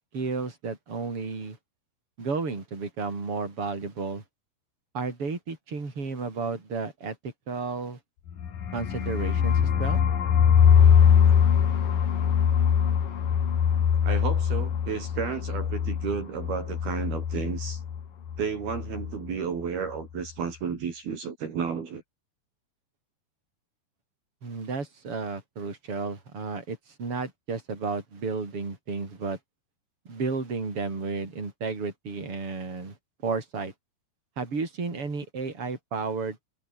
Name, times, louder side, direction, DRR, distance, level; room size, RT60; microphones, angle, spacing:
voice 1, 0.1-1.6 2.2-4.2 4.9-8.0 8.7-10.0 24.4-29.4 30.0-33.0 33.2-33.7 34.4-36.4, right 4 dB, 30° right, 6.5 m, -32 dB
sound 1, 8.3-18.0 18.3-18.4 18.7-19.1, left 8 dB, 55° left, 4.1 m, -22 dB
voice 2, 14.0-17.8 18.4-22.0, right 6 dB, 60° right, 5.4 m, -32 dB
omnidirectional pair, 5.0 m